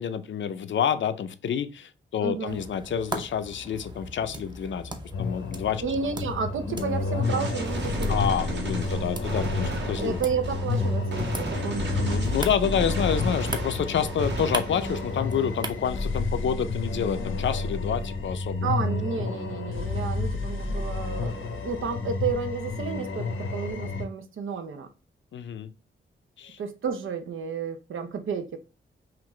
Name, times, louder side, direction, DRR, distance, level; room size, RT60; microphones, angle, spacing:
voice 1, 0.0-4.9 5.2-5.8 8.1-10.2 12.0-18.7 19.2-19.4 25.3-25.7 26.4-26.6, left 8 dB, 70° left, 0.5 m, -28 dB
voice 2, 2.2-2.6 5.8-8.2 10.0-12.2 18.6-24.9 26.6-28.6, right 5 dB, 90° right, 0.7 m, -31 dB
sound 1, 2.4-16.4, right 1 dB, 20° right, 0.6 m, -40 dB
sound 2, 5.1-24.1, left 3 dB, 90° left, 0.8 m, -30 dB
Gunshot gunfire, 7.2-15.2, right 2 dB, 60° right, 1.5 m, -34 dB
5.8 x 2.5 x 3.1 m
wide cardioid pair, 160°, 20 cm